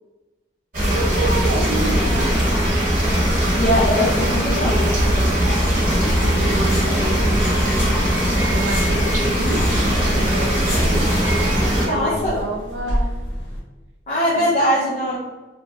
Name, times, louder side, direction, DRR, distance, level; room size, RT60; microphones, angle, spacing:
sound 1, 0.7-11.9, equal, 45° right, 1.2 m, -19 dB
voice 1, 0.9-2.6 6.2-7.9 8.5-11.3 11.8-13.1 14.3-14.5, right 2 dB, 85° right, 3 dB, 0.5 m, -29 dB
voice 2, 3.5-5.5 11.8-12.4 14.1-15.2, equal, 40° left, -7 dB, 0.5 m, -22 dB
sound 2, 5.0-13.6, equal, 80° left, 0.9 m, -31 dB
sound 3, 5.3-10.5 10.9-11.9, right 2 dB, 15° right, 0.9 m, -37 dB
3.1 x 2.2 x 2.7 m, 1.2 s
head